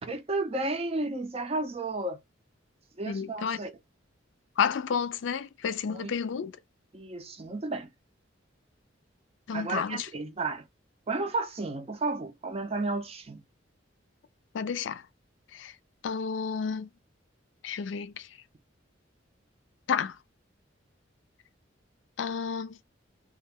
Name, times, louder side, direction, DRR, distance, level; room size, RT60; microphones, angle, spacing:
voice 1, 0.0-2.2 3.0-3.7 5.9-6.1 6.9-7.9 9.5-10.6 11.1-13.4, right 3 dB, 30° right, 0.5 m, -32 dB
voice 2, 3.1-3.6 4.6-6.5 9.5-10.1 14.5-15.0 15.5-15.7 16.0-16.9 17.6-18.3 19.9-20.2 22.2-22.8, left 6 dB, 70° left, 0.4 m, -31 dB
2.3 x 2.1 x 3.5 m
head